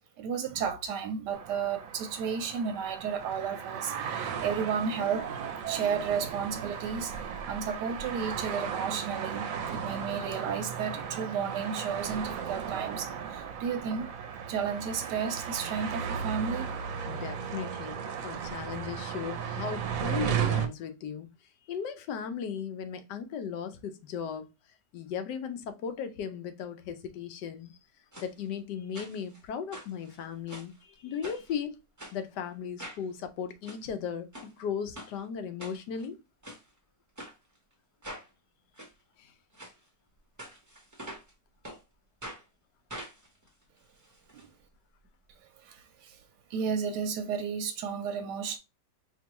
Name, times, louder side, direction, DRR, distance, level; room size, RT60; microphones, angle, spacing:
voice 1, 0.2-7.1 7.5-14.1 14.5-16.7 17.1-17.2 17.6-17.7 18.0-18.2 45.6-46.2 46.5-48.6, right 6 dB, 90° right, 1.3 m, -33 dB
sound 1, 1.3-20.7, right 7 dB, 65° right, 0.9 m, -35 dB
voice 2, 17.1-21.3 21.7-24.5 24.9-27.8 28.2-31.8 32.1-36.2 39.2-39.3, left 7 dB, 85° left, 1.3 m, -37 dB
sound 2, 28.1-28.3 28.9-29.4 29.7-30.8 31.2-31.5 32.0-32.2 32.8-33.0 33.5-33.8 34.3-34.5 34.9-35.1 35.6-36.1 36.4-36.6 37.2-37.3 38.0-38.3 38.8-38.9 39.5-39.7 40.4-41.3 41.6-41.8 42.2-42.4 42.9-44.4 44.7-44.8 45.0-45.1, right 1 dB, 20° right, 0.5 m, -44 dB
4.4 x 3.0 x 2.9 m
omnidirectional pair, 1.8 m